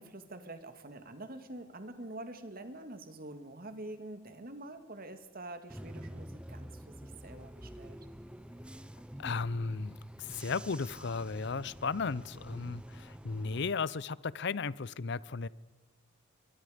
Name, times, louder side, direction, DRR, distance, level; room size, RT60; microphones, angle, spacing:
voice 1, 0.0-8.0, right 2 dB, 45° right, 9 dB, 2.0 m, -46 dB
Bus / Engine, 5.7-13.7, equal, 5° right, 0.7 m, -47 dB
voice 2, 9.2-15.5, left 4 dB, 60° left, 20 dB, 0.6 m, -35 dB
23.5 x 22.5 x 5.1 m, 1.3 s
head